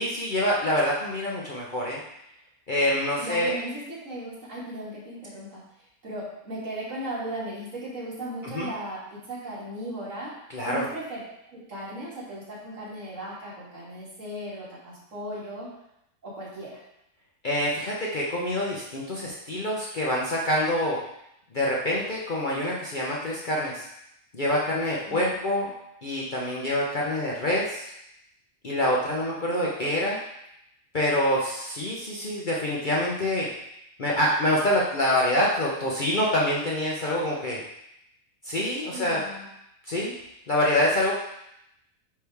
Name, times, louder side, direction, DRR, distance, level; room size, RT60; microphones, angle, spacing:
voice 1, 0.0-2.0 2.7-3.5 8.4-8.7 10.5-10.9 17.4-21.0 21.5-23.8 24.3-25.7 26.0-27.9 28.6-30.2 30.9-33.5 34.0-37.6 38.4-39.2 39.9-40.1 40.5-41.1, left 1 dB, 40° left, -4 dB, 0.8 m, -26 dB
voice 2, 3.2-5.6 6.0-15.7 16.2-16.8 25.1-25.4 38.9-39.5, right 1 dB, 60° right, -8 dB, 2.4 m, -37 dB
9.2 x 3.2 x 3.5 m, 0.81 s
omnidirectional pair, 1.5 m